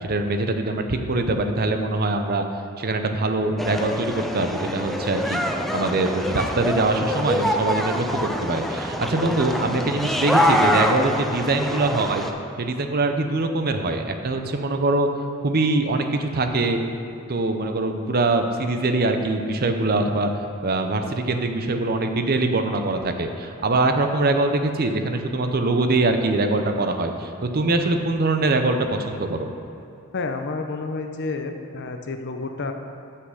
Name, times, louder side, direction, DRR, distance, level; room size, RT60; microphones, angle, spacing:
voice 1, 0.0-2.4 2.8-5.4 5.7-12.2 12.6-15.1 15.4-16.8 17.3-20.3 20.6-29.5, right 2 dB, 45° right, 6 dB, 0.6 m, -23 dB
sound 1, 3.6-12.3, equal, ahead, 0.4 m, -25 dB
voice 2, 30.1-32.7, left 3 dB, 50° left, 6 dB, 0.7 m, -30 dB
8.1 x 5.8 x 6.5 m, 2.8 s
head